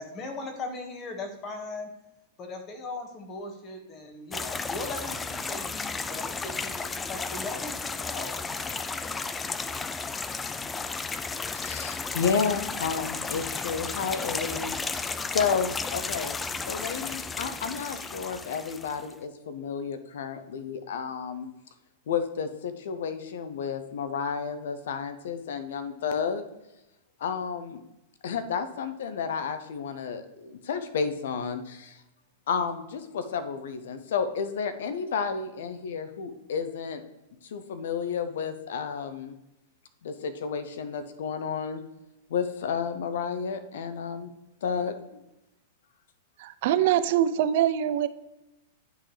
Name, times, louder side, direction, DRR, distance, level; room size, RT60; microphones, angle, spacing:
voice 1, 0.0-1.9 2.4-8.3, left 2 dB, 35° left, 4 dB, 1.6 m, -38 dB
sound 1, 4.3-19.1, left 4 dB, 15° left, 0.4 m, -33 dB
voice 2, 11.5-16.4 16.7-21.5 22.1-26.4 27.2-27.8 28.2-32.0 32.5-37.0 37.4-39.3 40.0-41.8 42.3-44.3 44.6-45.2, left 6 dB, 75° left, 10 dB, 0.6 m, -31 dB
voice 3, 46.4-48.1, right 11 dB, 60° right, 13 dB, 0.4 m, -23 dB
11.0 x 3.8 x 3.3 m, 0.93 s
hypercardioid pair, 115°, 0 cm